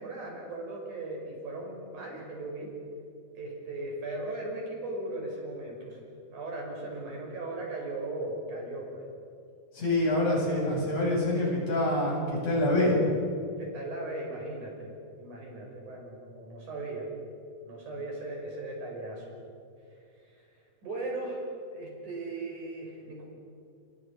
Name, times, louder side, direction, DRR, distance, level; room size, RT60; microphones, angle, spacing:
voice 1, 0.0-2.7 3.4-9.0 13.6-17.1 17.6-19.3 20.2-20.4 20.8-23.2, right 2 dB, 70° right, -1 dB, 7.3 m, -38 dB
voice 2, 9.7-13.0, left 1 dB, 55° left, -3 dB, 9.3 m, -26 dB
29.0 x 26.5 x 5.8 m, 2.6 s
omnidirectional pair, 3.6 m